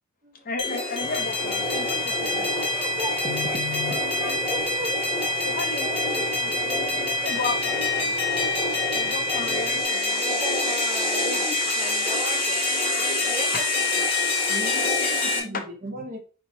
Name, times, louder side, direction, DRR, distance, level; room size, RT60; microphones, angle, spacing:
voice 1, 0.4-2.5 5.4-6.6 7.0-7.7 8.9-10.2 11.6-11.7 12.1-12.2 15.5-15.7, left 4 dB, 40° left, 0.6 m, -34 dB
sound 1, 0.6-15.4, left 2 dB, 25° left, 1.0 m, -25 dB
sound 2, 1.0-9.8, right 2 dB, 80° right, 1.3 m, -40 dB
voice 2, 2.1-5.0 5.7-8.2 10.2-12.6 13.0-13.5 13.7-14.1, right 2 dB, 20° right, 1.2 m, -38 dB
voice 3, 3.2-3.9 14.5-16.2, left 2 dB, 40° right, 0.9 m, -36 dB
4.5 x 4.2 x 2.8 m
head